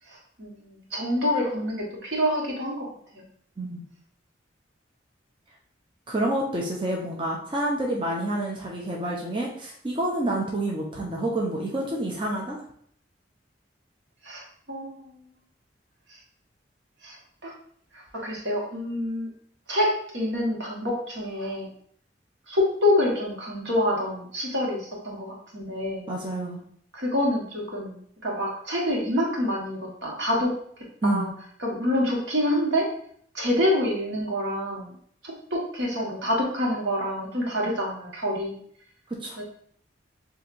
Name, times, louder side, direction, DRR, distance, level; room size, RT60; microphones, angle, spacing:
voice 1, 0.1-2.9 3.1-3.2 14.2-15.2 16.1-16.2 17.0-17.5 17.9-19.3 19.7-21.7 22.5-26.0 26.9-30.5 31.0-31.3 31.6-32.9 33.3-34.9 35.2-38.6 39.4-39.5, left 1 dB, 75° right, -2 dB, 1.5 m, -27 dB
voice 2, 6.1-12.6 26.1-26.6 31.0-31.3 39.2-39.4, right 1 dB, 25° right, -3 dB, 0.6 m, -28 dB
7.3 x 2.8 x 2.6 m, 0.63 s
head